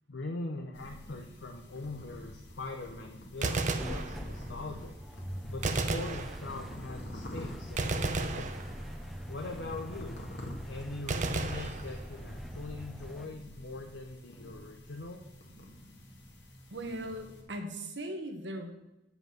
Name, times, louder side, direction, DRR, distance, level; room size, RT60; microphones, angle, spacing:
voice 1, 0.1-5.0 5.4-8.6 9.3-10.2 10.6-15.2, left 2 dB, 90° left, 2 dB, 0.8 m, -42 dB
sound 1, 0.7-17.4, left 1 dB, 70° left, 1.9 m, -48 dB
Gunshot gunfire, 3.3-4.6 5.6-6.9 7.8-9.2 11.1-12.4, right 3 dB, 45° right, 0.7 m, -34 dB
sound 2, 3.8-13.3, equal, ahead, 0.4 m, -43 dB
voice 2, 16.7-18.7, right 1 dB, 75° right, 5 dB, 1.3 m, -39 dB
9.1 x 5.4 x 6.0 m, 0.95 s
head